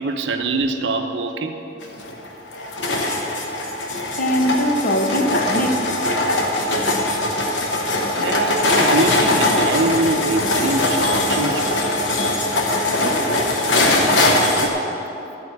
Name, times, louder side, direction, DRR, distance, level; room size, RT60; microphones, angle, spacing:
voice 1, 0.0-1.6 6.7-6.8 8.1-11.7, right 2 dB, 80° right, 6 dB, 0.7 m, -24 dB
sound 1, 1.8-14.7, left 1 dB, 85° left, 1.0 m, -20 dB
voice 2, 4.1-6.6, equal, 45° left, 3 dB, 0.8 m, -23 dB
12.0 x 4.3 x 8.1 m, 2.9 s
head